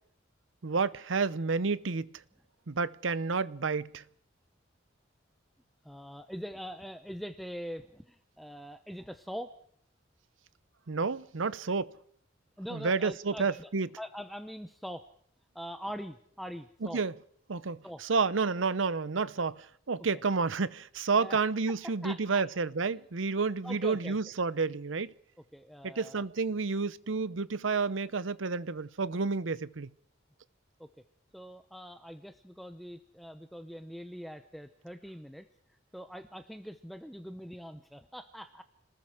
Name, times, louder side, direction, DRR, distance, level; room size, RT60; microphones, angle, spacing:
voice 1, 0.6-2.1 2.7-4.0 10.9-11.9 12.7-13.9 16.8-17.1 17.5-25.1 25.8-29.9, right 4 dB, 80° right, 0.8 m, -30 dB
voice 2, 5.8-9.6 12.6-13.7 14.0-15.1 15.5-17.0 17.8-18.0 20.1-20.2 21.2-21.4 21.8-22.5 23.6-24.2 25.5-26.2 30.8-30.9 31.3-35.5 35.9-38.6, equal, ahead, 0.8 m, -43 dB
27.0 x 20.0 x 4.9 m
head